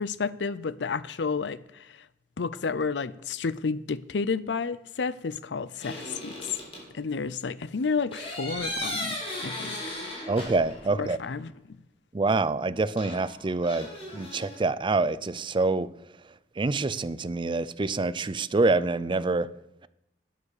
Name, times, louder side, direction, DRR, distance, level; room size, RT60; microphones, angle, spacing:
voice 1, 0.0-1.9 2.4-6.5 6.9-9.8 11.0-11.5, left 4 dB, 85° left, 0.6 m, -31 dB
sound 1, 5.8-6.8 8.1-11.0 11.2-11.3 13.0-14.6, left 1 dB, 35° left, 4.4 m, -36 dB
voice 2, 10.3-11.2 12.1-13.9 14.1-15.9 16.6-19.5, right 3 dB, 30° right, 0.5 m, -26 dB
11.5 x 9.9 x 6.6 m
head